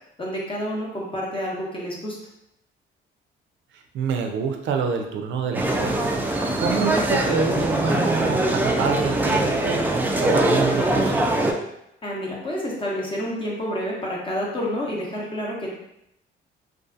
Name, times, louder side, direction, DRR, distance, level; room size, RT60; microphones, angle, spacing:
voice 1, 0.2-2.2 12.0-15.7, equal, 25° left, -4 dB, 0.7 m, -29 dB
voice 2, 3.7-9.8 10.2-11.5, right 5 dB, 70° right, 4 dB, 0.5 m, -27 dB
sound 1, 5.5-11.5, right 1 dB, 10° right, 0.3 m, -22 dB
2.6 x 2.4 x 2.4 m, 0.80 s
cardioid pair, 90°, 20 cm